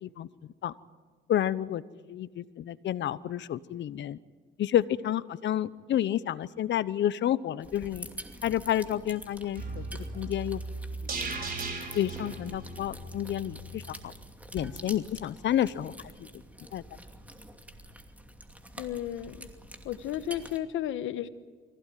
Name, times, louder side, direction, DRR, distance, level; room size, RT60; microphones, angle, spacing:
voice 1, 1.3-1.8 2.1-4.2 4.6-8.1 8.4-10.6 11.9-14.1 14.5-15.9 16.2-16.4 16.7-16.8, left 11 dB, 65° left, 16 dB, 0.9 m, -30 dB
sound 1, 7.6-20.6, right 1 dB, 5° right, 2.6 m, -47 dB
sound 2, 9.6-13.8 14.1-14.2, right 3 dB, 50° right, 5.7 m, -37 dB
voice 2, 18.8-19.5 19.8-21.3, left 11 dB, 85° left, 12 dB, 1.2 m, -33 dB
24.5 x 16.5 x 9.3 m, 1.5 s
cardioid pair, 90°, 20 cm